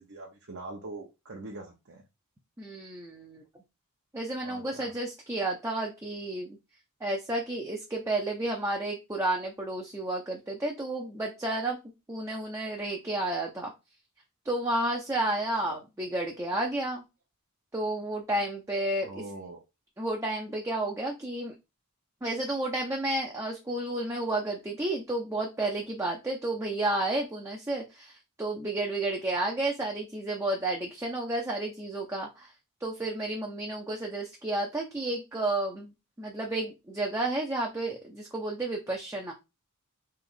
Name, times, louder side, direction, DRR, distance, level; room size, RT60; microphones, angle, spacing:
voice 1, 0.0-2.0 4.4-4.9 15.7-15.8 19.0-19.6, right 2 dB, 55° right, -1 dB, 0.8 m, -43 dB
voice 2, 2.6-3.4 4.1-6.6 7.0-11.8 12.1-13.7 14.4-17.0 17.7-19.1 20.0-21.5 22.2-32.5 32.8-39.3, right 2 dB, 15° right, 0 dB, 0.5 m, -31 dB
3.3 x 3.0 x 3.8 m, 0.25 s
head